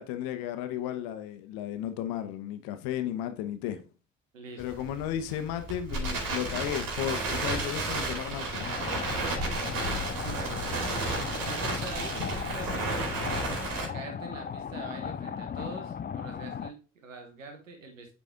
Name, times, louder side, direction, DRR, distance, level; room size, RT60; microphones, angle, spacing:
voice 1, 0.0-3.9 4.6-8.7, left 11 dB, 65° left, 1.0 m, -34 dB
voice 2, 4.3-4.8 10.2-13.3 13.9-18.1, right 3 dB, 85° right, 1.2 m, -44 dB
Crackle, 4.6-13.8, right 2 dB, 60° right, 2.4 m, -32 dB
sound 1, 8.6-16.7, left 7 dB, 25° left, 0.5 m, -37 dB
8.4 x 4.1 x 3.6 m
figure-of-eight pair, 45°, 37 cm